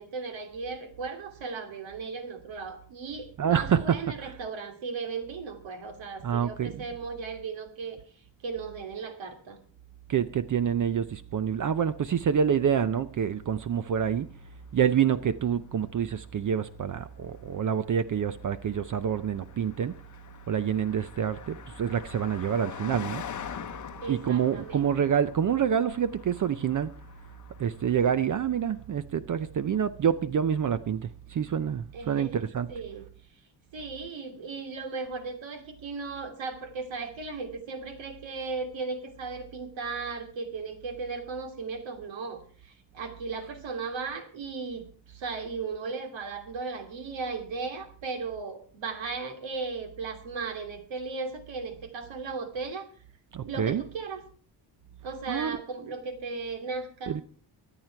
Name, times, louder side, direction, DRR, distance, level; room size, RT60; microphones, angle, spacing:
voice 1, 0.0-8.0 8.4-9.6 24.0-25.1 31.9-33.0 33.7-52.9 53.4-54.2 55.0-57.2, right 4 dB, 75° right, 2.9 m, -36 dB
voice 2, 3.4-4.3 6.2-6.8 10.1-14.3 14.7-20.0 20.5-23.2 24.1-26.9 27.6-32.8 53.3-53.8 55.3-55.6 57.1-57.2, right 8 dB, 45° right, 0.6 m, -27 dB
Car passing by, 13.0-28.7, left 8 dB, 40° left, 0.8 m, -46 dB
24.0 x 9.1 x 4.6 m
wide cardioid pair, 155°, 45 cm